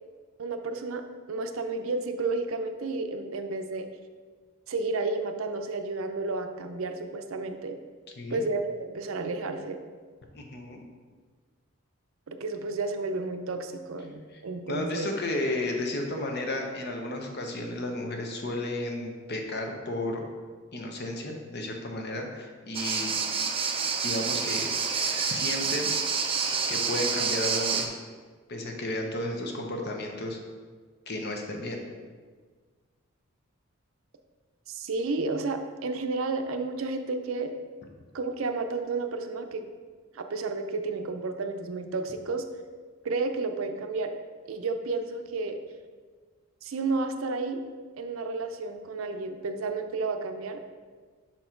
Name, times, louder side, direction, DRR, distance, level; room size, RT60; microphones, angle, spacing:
voice 1, 0.4-3.9 4.7-7.8 8.3-9.8 12.3-15.1 34.7-37.5 38.1-39.6 40.1-42.4 43.0-44.2 44.5-45.6 46.6-47.6 48.0-50.6, right 3 dB, 75° right, 7 dB, 0.5 m, -31 dB
voice 2, 10.3-10.8 14.7-20.2 20.7-23.1 24.0-24.7 25.2-25.9 26.2-26.4 26.7-28.0 28.5-30.4 31.1-31.8, left 1 dB, 50° left, 2 dB, 0.9 m, -33 dB
sound 1, 22.7-27.9, right 5 dB, 25° right, 0.4 m, -28 dB
6.1 x 4.2 x 4.4 m, 1.5 s
head